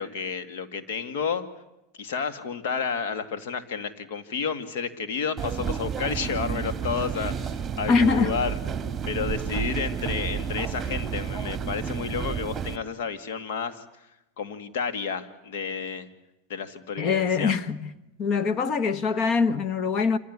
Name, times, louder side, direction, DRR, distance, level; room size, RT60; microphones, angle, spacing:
voice 1, 0.0-1.4 2.0-8.6 9.1-13.8 14.4-16.1 16.5-17.5, left 6 dB, 70° left, 2.3 m, -31 dB
sound 1, 5.4-12.8, right 7 dB, 20° right, 1.9 m, -31 dB
voice 2, 7.9-8.4 17.0-17.9 18.2-20.2, left 5 dB, 40° left, 1.5 m, -23 dB
27.0 x 16.0 x 9.8 m
supercardioid pair, 115°, 0 cm